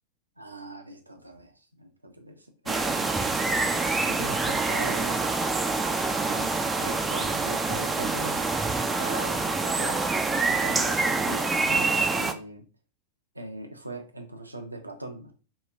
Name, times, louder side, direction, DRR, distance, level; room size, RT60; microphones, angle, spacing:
voice 1, 0.4-3.3 4.0-5.3 6.3-8.5 8.8-10.1 10.4-12.6 13.3-15.3, right 1 dB, 85° right, 5 dB, 0.6 m, -40 dB
sound 1, 2.7-12.3, right 3 dB, 10° right, 0.4 m, -26 dB
3.1 x 2.3 x 3.3 m, 0.34 s
figure-of-eight pair, 90°, 0 cm